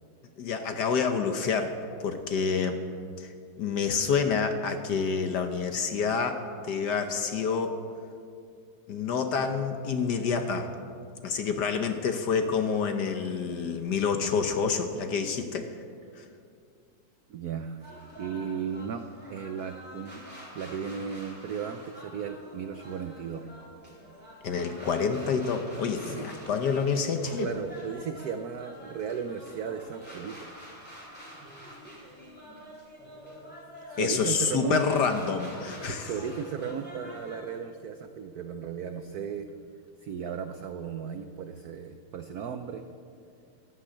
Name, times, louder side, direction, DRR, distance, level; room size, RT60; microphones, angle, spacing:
voice 1, 0.4-1.7 2.0-2.8 3.2-3.3 3.6-7.8 8.9-10.7 11.2-15.7 24.4-27.5 34.0-36.1, left 5 dB, 60° left, 7 dB, 1.3 m, -28 dB
voice 2, 17.3-19.0 19.3-20.2 20.5-23.4 26.0-26.3 27.4-30.4 33.9-34.8 35.8-39.5 40.0-42.8, right 7 dB, 75° right, 8 dB, 0.8 m, -35 dB
sound 1, 17.8-37.6, equal, 5° left, 4.0 m, -47 dB
12.0 x 11.5 x 8.6 m, 2.4 s
omnidirectional pair, 2.4 m